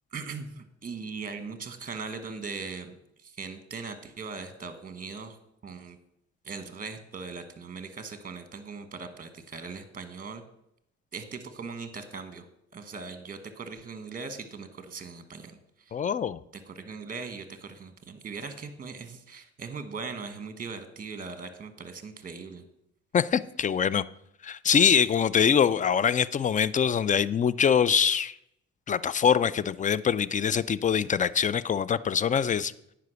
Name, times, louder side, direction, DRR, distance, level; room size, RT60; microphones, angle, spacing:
voice 1, 0.1-5.4 5.6-6.0 6.4-10.4 11.1-12.5 12.7-15.9 16.7-22.6, right 4 dB, 30° right, 1.1 m, -40 dB
voice 2, 15.9-16.4 23.1-24.0 24.4-28.3 28.9-32.7, left 7 dB, 25° left, 0.3 m, -24 dB
9.4 x 5.1 x 6.2 m
cardioid pair, 90°, 30 cm